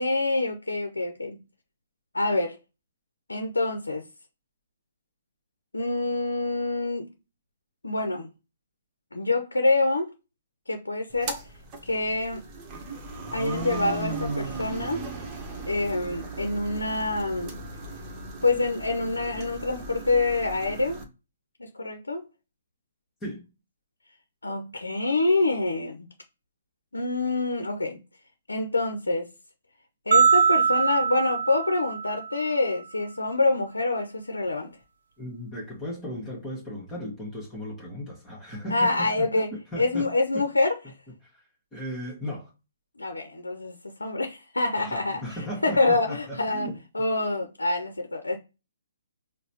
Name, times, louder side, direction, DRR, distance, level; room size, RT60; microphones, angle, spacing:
voice 1, 0.0-1.4 2.1-2.6 3.3-4.0 5.7-7.1 7.8-8.3 9.1-10.1 10.7-11.4 11.8-12.4 13.3-15.0 15.7-17.6 18.4-21.0 21.6-22.3 24.4-26.1 26.9-28.0 28.5-29.3 30.1-34.8 38.7-39.5 39.7-40.8 43.0-45.2 45.6-46.7 46.9-48.4, left 2 dB, 90° left, 0.6 m, -26 dB
sound 1, 11.1-21.0, right 2 dB, 25° right, 1.0 m, -36 dB
sound 2, 30.1-32.5, right 6 dB, 65° right, 0.7 m, -22 dB
voice 2, 35.2-40.4 41.3-41.4 41.7-42.5 44.7-46.8, equal, 15° left, 1.4 m, -36 dB
4.7 x 2.2 x 2.8 m
figure-of-eight pair, 135°, 0 cm